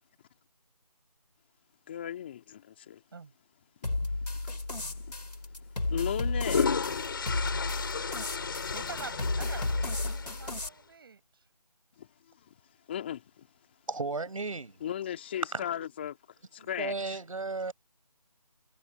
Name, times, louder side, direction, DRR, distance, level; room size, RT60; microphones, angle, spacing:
voice 1, 1.9-3.0 4.4-4.6 4.9-5.2 5.9-6.8 7.9-8.0 12.0-12.1 12.9-13.5 14.8-16.2 16.5-17.2, left 10 dB, 15° left, 2.8 m, -36 dB
sound 1, 3.8-10.7, left 2 dB, 90° left, 4.3 m, -33 dB
sound 2, 4.7-4.9 6.1-10.7, left 5 dB, 35° left, 4.2 m, -34 dB
voice 2, 8.7-11.5, right 5 dB, 35° right, 6.8 m, -46 dB
voice 3, 13.9-14.8 15.5-15.6 16.6-17.7, right 3 dB, 55° right, 6.1 m, -34 dB
figure-of-eight pair, 170°, 20 cm